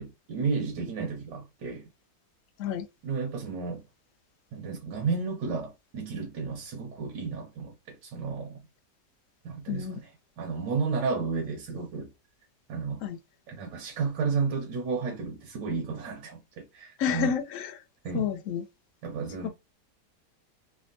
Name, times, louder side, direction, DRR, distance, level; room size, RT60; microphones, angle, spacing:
voice 1, 0.0-1.9 3.0-3.8 4.5-8.6 9.4-10.1 10.4-12.1 12.7-13.0 13.5-17.4 18.0-18.3 19.0-19.5, right 5 dB, 75° right, 1.4 m, -32 dB
voice 2, 9.7-10.0 13.0-13.2 17.0-17.7 18.1-18.6 19.4-19.5, left 8 dB, 70° left, 0.7 m, -29 dB
3.4 x 2.1 x 2.5 m
omnidirectional pair, 1.9 m